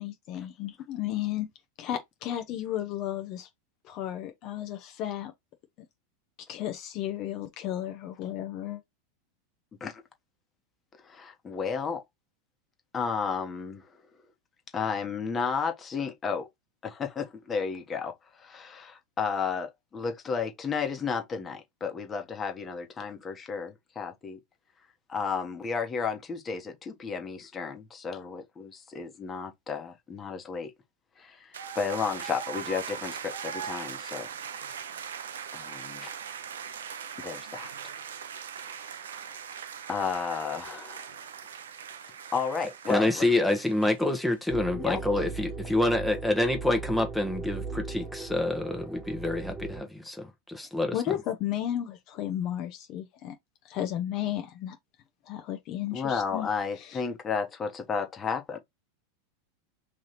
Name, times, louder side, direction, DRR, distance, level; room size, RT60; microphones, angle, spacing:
voice 1, 0.0-1.5 1.8-3.5 3.8-5.3 6.5-8.8 50.9-53.3 53.6-54.8 55.3-56.5 56.8-57.0, left 12 dB, 50° left, 0.8 m, -33 dB
voice 2, 11.0-12.0 12.9-13.9 14.7-16.5 16.8-24.4 25.1-30.7 31.2-34.3 35.5-36.1 37.2-37.7 39.3-39.4 39.9-41.2 42.0-43.3 44.7-45.0 55.9-58.6, left 5 dB, 25° left, 1.2 m, -33 dB
sound 1, 31.5-44.2, right 7 dB, 85° right, 0.5 m, -40 dB
voice 3, 42.9-50.9, left 1 dB, 5° left, 1.0 m, -27 dB
sound 2, 44.5-49.8, right 4 dB, 15° right, 1.7 m, -38 dB
3.3 x 2.7 x 4.1 m
hypercardioid pair, 100°, 0 cm